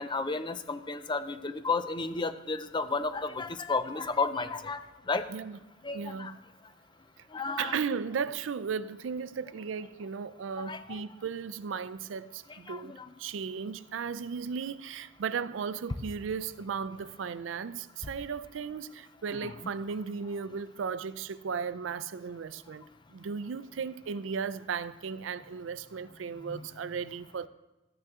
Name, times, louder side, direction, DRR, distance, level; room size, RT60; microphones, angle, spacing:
voice 1, 0.0-5.3 5.8-6.3 7.3-7.7 10.6-11.0 12.7-13.1 19.4-19.5 26.5-26.6, left 4 dB, 25° left, 0.5 m, -33 dB
voice 2, 5.9-6.4 7.2-22.8 23.1-27.5, right 6 dB, 85° right, 0.4 m, -36 dB
13.5 x 9.2 x 3.6 m
head